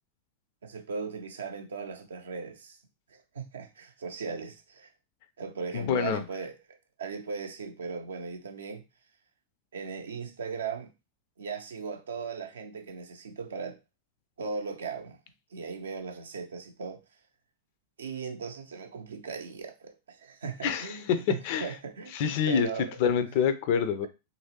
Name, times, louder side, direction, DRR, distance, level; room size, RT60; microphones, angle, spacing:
voice 1, 0.6-2.8 3.1-4.9 5.4-8.8 9.7-10.9 11.4-13.8 14.4-15.2 15.5-17.0 18.0-23.0, right 5 dB, 70° right, 0.5 m, -38 dB
voice 2, 5.7-6.2 20.6-21.7 22.1-22.7 23.0-24.1, left 7 dB, 50° left, 0.4 m, -26 dB
2.9 x 2.7 x 2.8 m
figure-of-eight pair, 90°, 0 cm